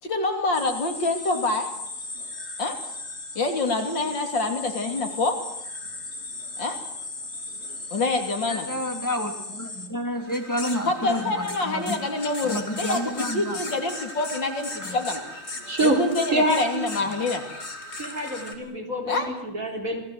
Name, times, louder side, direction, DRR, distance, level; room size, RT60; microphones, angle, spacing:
voice 1, 0.0-1.7 2.6-2.8 3.4-5.4 6.6-6.8 7.9-8.7 10.9-15.2 15.8-17.4 19.1-19.3, left 3 dB, 60° left, 5 dB, 3.6 m, -26 dB
sound 1, 0.5-18.6, left 2 dB, 30° left, 3.0 m, -37 dB
voice 2, 8.5-12.0 12.4-13.6 14.8-15.0 17.0-17.1, left 1 dB, 10° left, 3 dB, 3.2 m, -30 dB
voice 3, 15.7-16.0 16.3-16.9 18.0-20.1, right 1 dB, 40° right, 2 dB, 4.7 m, -26 dB
28.0 x 19.5 x 8.1 m, 0.83 s
omnidirectional pair, 2.3 m